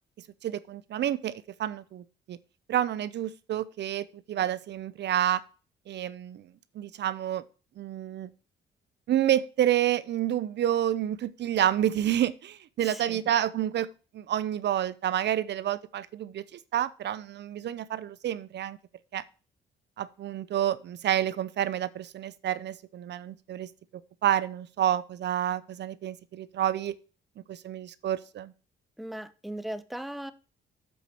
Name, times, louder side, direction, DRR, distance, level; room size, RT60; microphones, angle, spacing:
voice 1, 0.4-1.3 1.6-2.4 2.7-5.4 5.9-6.4 6.8-7.4 7.8-8.3 9.1-13.9 14.1-16.4 16.7-18.8 19.1-19.2 20.0-23.7 24.2-27.0 27.5-28.5, right 11 dB, 60° right, 0.6 m, -29 dB
voice 2, 12.8-13.2 29.0-30.3, right 1 dB, ahead, 0.7 m, -38 dB
7.8 x 5.0 x 5.9 m
cardioid pair, 90°, 20 cm